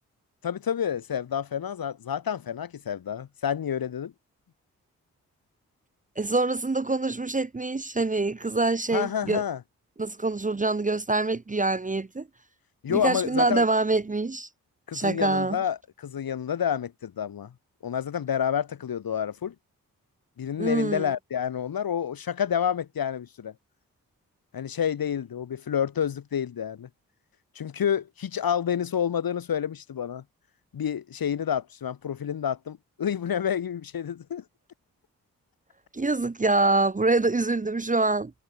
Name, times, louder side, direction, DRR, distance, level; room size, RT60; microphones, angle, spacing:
voice 1, 0.4-4.1 8.9-9.6 12.8-13.7 14.9-17.5 17.8-19.5 20.4-23.5 24.5-26.9 27.5-30.2 30.7-34.4, left 8 dB, 75° left, 5.2 m, -29 dB
voice 2, 6.2-9.4 10.0-12.3 12.9-14.5 14.9-15.6 20.6-21.1 35.9-38.3, right 3 dB, 20° right, 0.9 m, -25 dB
supercardioid pair, 45°, 35 cm